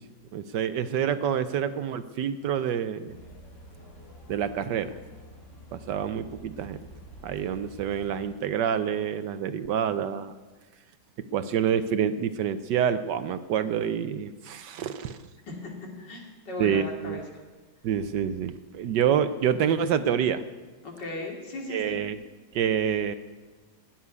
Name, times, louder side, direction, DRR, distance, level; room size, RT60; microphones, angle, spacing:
voice 1, 0.3-3.2 4.3-4.9 5.7-6.8 7.2-10.3 11.3-15.2 16.6-17.2 17.8-20.4 21.7-22.2 22.5-23.1, right 8 dB, 70° right, 12 dB, 1.2 m, -27 dB
sound 1, 3.1-8.3, equal, 35° left, 3.5 m, -48 dB
voice 2, 15.5-17.2 20.8-22.0, left 2 dB, 65° left, 0 dB, 3.1 m, -37 dB
17.0 x 7.5 x 9.6 m, 1.3 s
omnidirectional pair, 2.1 m